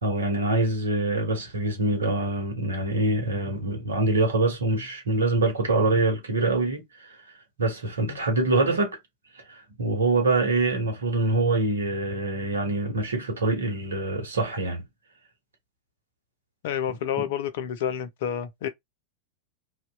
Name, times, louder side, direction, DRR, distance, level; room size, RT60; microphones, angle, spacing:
voice 1, 0.0-7.2 7.6-9.0 9.5-14.8 17.2-17.3, right 2 dB, 70° right, 0.9 m, -25 dB
voice 2, 16.6-18.7, left 9 dB, 55° left, 0.4 m, -29 dB
2.7 x 2.2 x 2.3 m
figure-of-eight pair, 90°, 0 cm